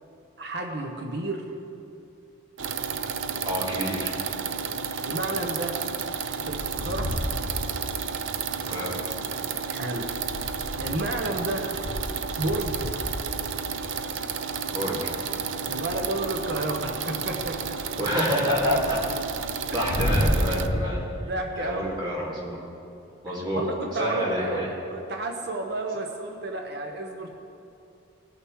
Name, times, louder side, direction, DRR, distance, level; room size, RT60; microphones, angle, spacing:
voice 1, 0.4-1.4 5.1-5.8 6.5-7.1 9.7-10.1 10.8-11.7 12.4-12.9 15.7-17.8 19.7-19.8 21.3-21.9 23.5-27.3, right 2 dB, 55° right, 2 dB, 1.0 m, -31 dB
sound 1, 2.6-20.7, right 6 dB, 70° right, 0.6 m, -32 dB
voice 2, 3.4-4.2 8.7-9.0 14.7-15.2 18.0-19.0 19.7-21.0 21.6-22.6 23.2-23.6 23.9-24.7, equal, 20° right, -6 dB, 2.5 m, -28 dB
sound 2, 6.4-8.4 9.1-14.8 15.2-20.8, equal, 65° left, 1.7 m, -32 dB
18.5 x 6.7 x 4.7 m, 2.7 s
head